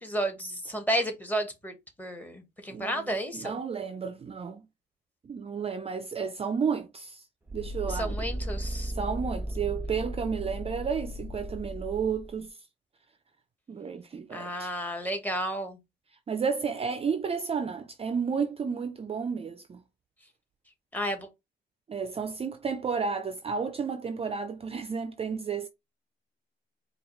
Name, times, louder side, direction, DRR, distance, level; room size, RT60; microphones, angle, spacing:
voice 1, 0.0-1.7 2.0-3.6 7.9-8.9 14.3-15.8 20.9-21.3, right 1 dB, 10° left, 1.2 m, -32 dB
voice 2, 2.7-4.7 5.2-7.3 7.5-8.2 8.9-12.6 13.7-14.7 16.3-19.8 21.9-25.7, right 6 dB, 30° right, 0.4 m, -32 dB
sound 1, 7.5-12.4, equal, 10° right, 1.0 m, -35 dB
4.6 x 2.3 x 3.0 m
cardioid pair, 90°, 20 cm